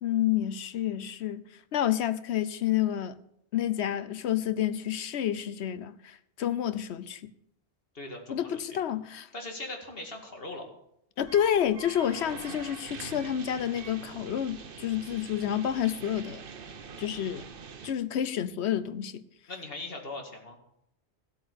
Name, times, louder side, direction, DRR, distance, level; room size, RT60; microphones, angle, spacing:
voice 1, 0.0-1.4 1.7-3.2 3.5-7.3 8.3-9.3 11.2-16.4 17.0-17.4 17.8-19.2, left 10 dB, 75° left, 1.0 m, -29 dB
voice 2, 7.9-8.6 9.3-10.7 19.5-20.6, left 2 dB, 55° left, 2.5 m, -40 dB
sound 1, 11.2-17.9, right 6 dB, 55° right, 1.0 m, -44 dB
15.0 x 8.4 x 6.8 m
omnidirectional pair, 1.1 m